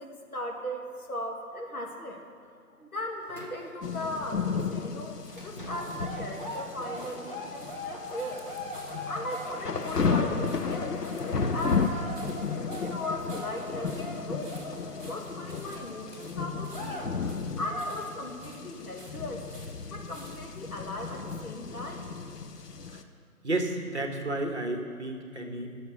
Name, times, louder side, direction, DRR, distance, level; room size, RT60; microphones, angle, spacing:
voice 1, 0.0-8.6 9.1-11.0 11.5-12.3 12.8-14.6 15.1-17.1 17.6-19.4 19.8-22.1, left 1 dB, 70° left, 1 dB, 1.8 m, -38 dB
sound 1, 3.0-4.4 5.3-15.8 16.2-16.3 16.6-17.3 17.6-18.0, equal, 35° left, 1.2 m, -41 dB
sound 2, 3.8-23.0, left 5 dB, 85° left, 0.8 m, -34 dB
sound 3, 4.7-20.7 21.4-21.5, right 1 dB, 5° left, 1.2 m, -54 dB
voice 2, 23.4-25.8, right 2 dB, 45° right, 3 dB, 1.1 m, -32 dB
10.5 x 6.7 x 5.9 m, 2.2 s
figure-of-eight pair, 165°, 46 cm